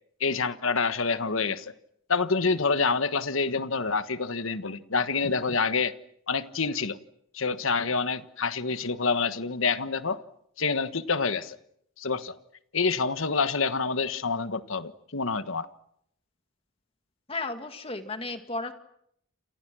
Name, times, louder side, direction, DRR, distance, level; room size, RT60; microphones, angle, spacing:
voice 1, 0.2-1.7 2.1-5.9 6.3-7.0 7.3-10.2 10.6-11.6 12.0-12.4 12.7-15.7, left 4 dB, 70° left, 1.4 m, -27 dB
voice 2, 17.3-18.7, left 3 dB, 25° left, 2.2 m, -34 dB
29.0 x 27.0 x 6.3 m
head